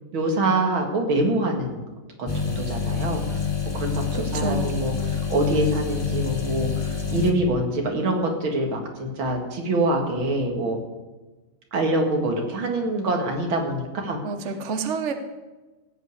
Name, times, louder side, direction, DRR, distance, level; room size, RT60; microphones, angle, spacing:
voice 1, 0.1-1.9 2.2-3.4 3.7-4.0 4.3-10.8 11.7-14.2, right 1 dB, 70° right, 2 dB, 2.7 m, -25 dB
sound 1, 2.3-7.3, left 5 dB, 35° left, 0.4 m, -27 dB
voice 2, 4.1-4.8 14.2-15.1, right 4 dB, 45° right, 7 dB, 1.0 m, -28 dB
16.5 x 5.6 x 8.3 m, 1.2 s
omnidirectional pair, 2.3 m